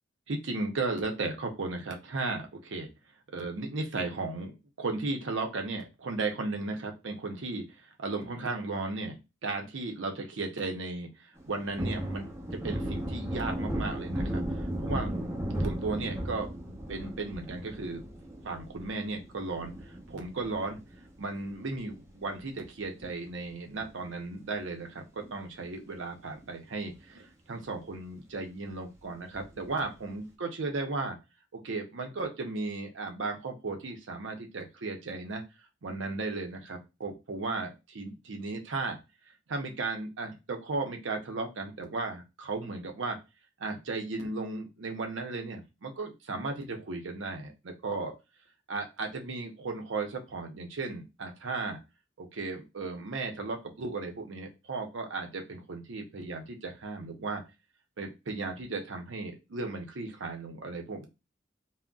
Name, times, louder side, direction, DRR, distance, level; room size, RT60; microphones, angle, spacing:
voice 1, 0.3-2.9 3.3-4.5 4.8-7.6 8.0-9.2 9.4-12.3 12.5-15.1 15.6-16.5 16.9-18.0 18.4-19.7 20.1-20.8 21.2-31.2 31.5-35.4 35.8-39.0 39.5-43.2 43.6-48.1 48.7-51.8 52.2-57.4 58.0-61.1, right 3 dB, 80° right, 3 dB, 0.6 m, -35 dB
Thunder, 11.4-22.1 22.5-22.6 22.9-24.4 24.7-24.9 25.2-26.0 26.4-26.5 26.9-27.0 29.3-29.9, right 1 dB, 15° right, 0.8 m, -36 dB
3.7 x 2.0 x 2.3 m, 0.26 s
head